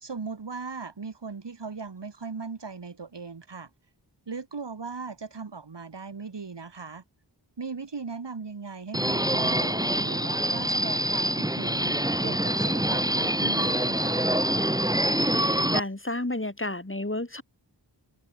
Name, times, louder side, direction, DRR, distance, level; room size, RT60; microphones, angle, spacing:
voice 1, 0.0-3.7 4.3-7.0 7.6-11.9 12.2-14.3, right 4 dB, 75° right, 1.6 m, -38 dB
Subway metro underground, 8.9-15.8, right 1 dB, 10° right, 1.6 m, -25 dB
voice 2, 15.7-17.4, left 1 dB, 30° left, 3.5 m, -31 dB
wide cardioid pair, 45°, 43 cm